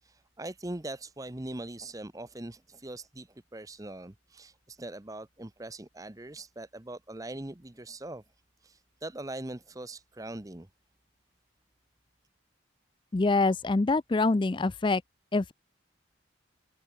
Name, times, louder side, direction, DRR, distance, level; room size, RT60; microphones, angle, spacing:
voice 1, 0.0-8.2 8.6-10.7, right 2 dB, 15° right, 0.8 m, -41 dB
voice 2, 13.1-15.0 15.3-15.5, left 3 dB, 25° left, 0.4 m, -25 dB
head